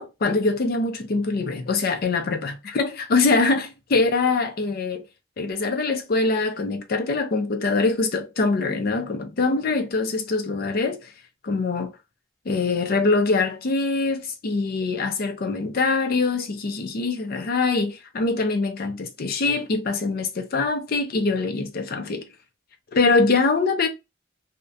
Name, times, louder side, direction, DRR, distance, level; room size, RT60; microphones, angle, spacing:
voice 1, 0.0-5.0 5.4-11.0 11.4-11.9 12.5-22.3 22.9-23.9, left 3 dB, 50° left, 0.5 m, -23 dB
2.4 x 2.1 x 2.6 m
head